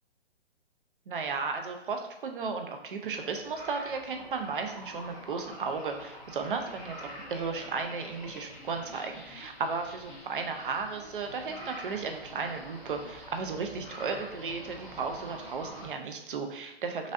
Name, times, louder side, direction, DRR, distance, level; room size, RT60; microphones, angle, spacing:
voice 1, 1.1-17.1, right 5 dB, 50° right, 5 dB, 0.7 m, -35 dB
sound 1, 3.1-15.9, equal, ahead, 0.5 m, -46 dB
6.0 x 2.7 x 2.5 m, 0.93 s
figure-of-eight pair, 130°, 33 cm